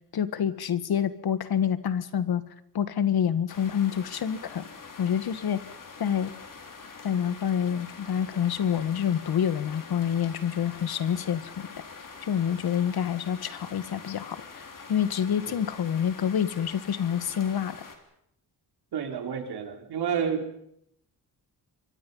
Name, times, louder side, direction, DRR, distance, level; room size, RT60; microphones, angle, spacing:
voice 1, 0.1-2.4 2.7-4.6 5.0-5.6 6.0-6.3 7.0-11.7 12.2-14.4 14.9-17.8, left 8 dB, 70° left, 13 dB, 1.7 m, -27 dB
sound 1, 3.5-18.0, left 5 dB, 55° left, 4.1 m, -45 dB
voice 2, 18.9-20.4, right 7 dB, 80° right, 5 dB, 3.9 m, -30 dB
28.5 x 24.0 x 5.6 m, 0.74 s
cardioid pair, 105°, 38 cm